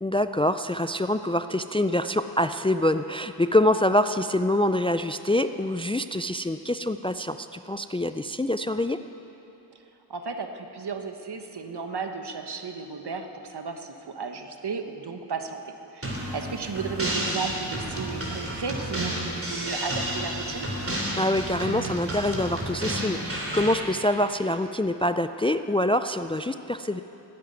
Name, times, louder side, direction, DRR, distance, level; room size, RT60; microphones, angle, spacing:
voice 1, 0.0-9.0 21.1-27.0, left 1 dB, 15° left, 10 dB, 0.3 m, -25 dB
voice 2, 10.1-20.7, right 5 dB, 65° right, 6 dB, 1.2 m, -34 dB
sound 1, 16.0-23.8, right 1 dB, 30° right, 3.2 m, -31 dB
13.5 x 9.7 x 9.6 m, 2.9 s
wide cardioid pair, 65°, 42 cm